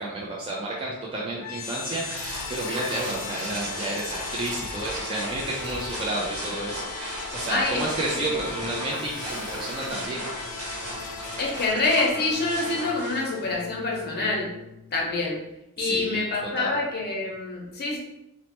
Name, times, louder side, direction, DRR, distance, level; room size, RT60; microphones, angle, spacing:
voice 1, 0.0-10.2 15.8-16.2 16.6-16.8, right 2 dB, 25° right, -4 dB, 0.3 m, -31 dB
sound 1, 1.4-15.3, left 5 dB, 80° left, 0.4 m, -38 dB
sound 2, 1.6-13.5, right 1 dB, 70° right, 1.0 m, -37 dB
voice 2, 7.5-7.8 8.1-8.4 11.4-14.5 14.9-15.4 15.8-18.0, left 3 dB, 45° left, -2 dB, 0.7 m, -26 dB
3.1 x 2.0 x 2.9 m, 0.89 s
head